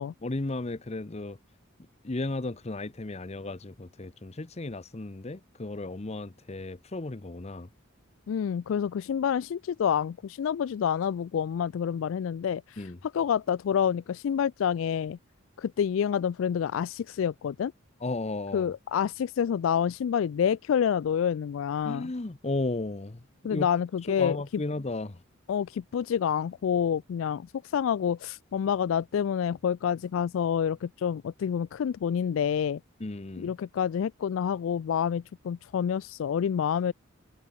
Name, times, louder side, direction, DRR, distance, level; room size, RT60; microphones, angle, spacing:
voice 1, 0.2-1.4 2.0-7.7 12.8-13.0 18.0-18.7 21.8-23.7 24.1-25.2 33.0-33.5, left 2 dB, 30° left, 0.8 m, -34 dB
voice 2, 8.3-15.2 15.6-17.7 18.5-22.1 23.4-24.6 25.5-32.8 33.4-36.9, left 8 dB, 70° left, 0.3 m, -28 dB
head